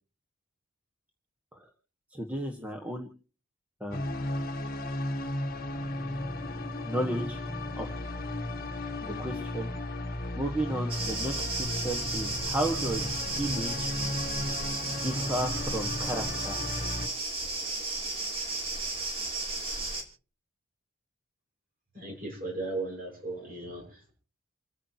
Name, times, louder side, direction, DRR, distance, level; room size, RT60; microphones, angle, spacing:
voice 1, 2.1-3.1 3.8-4.2 6.8-7.4 7.7-7.9 9.0-9.7 10.3-13.9 14.8-16.6, right 1 dB, 5° right, 2 dB, 1.5 m, -33 dB
sound 1, 3.9-17.1, left 1 dB, 45° left, 1.4 m, -35 dB
sound 2, 10.9-20.0, right 2 dB, 25° right, 3.0 m, -34 dB
voice 2, 21.9-24.1, right 2 dB, 40° right, 0 dB, 6.0 m, -36 dB
29.0 x 9.9 x 2.9 m, 0.37 s
head